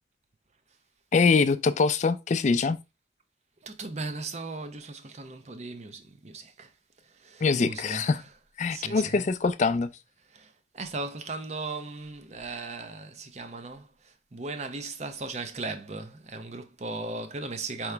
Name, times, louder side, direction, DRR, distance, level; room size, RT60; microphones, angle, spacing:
voice 1, 1.1-2.8 7.4-8.2 8.6-9.9, left 4 dB, 40° left, 0.4 m, -24 dB
voice 2, 3.6-6.7 7.0-8.1 8.7-9.3 10.3-17.9, right 3 dB, 40° right, 0.6 m, -37 dB
4.9 x 3.0 x 3.3 m
head